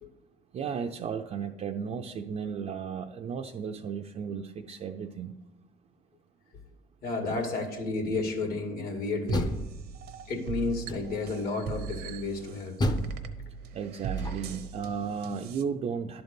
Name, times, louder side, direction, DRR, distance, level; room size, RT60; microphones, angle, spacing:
voice 1, 0.5-5.4 13.7-16.2, right 6 dB, 40° right, 3 dB, 0.5 m, -34 dB
voice 2, 7.0-9.5 10.3-12.8, left 3 dB, 65° left, 2 dB, 2.2 m, -32 dB
Door, 9.1-10.3 10.9-11.4 12.8-14.7, left 1 dB, 25° left, 0.7 m, -33 dB
sound 1, 9.3-15.6, right 7 dB, 70° right, 0.8 m, -39 dB
11.5 x 4.0 x 5.2 m, 0.95 s
cardioid pair, 110°, 17 cm